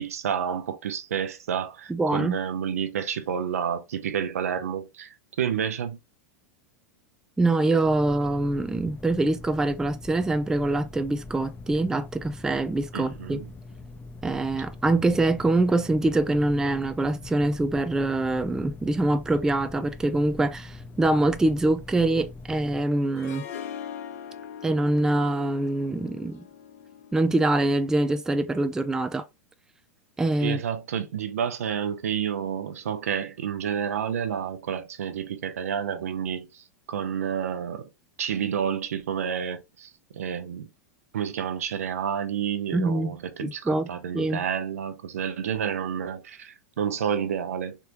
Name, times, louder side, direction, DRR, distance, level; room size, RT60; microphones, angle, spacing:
voice 1, 0.0-6.0 12.9-13.5 30.4-37.9 38.2-40.7 41.1-47.8, right 8 dB, 65° right, 0.8 m, -30 dB
voice 2, 1.9-2.4 7.4-13.4 14.2-23.5 24.6-26.4 27.1-29.3 30.2-30.6 42.7-43.1 43.4-43.9 44.1-44.4, right 2 dB, 5° right, 0.4 m, -24 dB
sound 1, 7.8-22.8, left 3 dB, 20° left, 0.8 m, -43 dB
Harp, 23.2-28.2, left 8 dB, 60° left, 0.8 m, -41 dB
4.3 x 3.6 x 2.6 m
figure-of-eight pair, 90°, 9 cm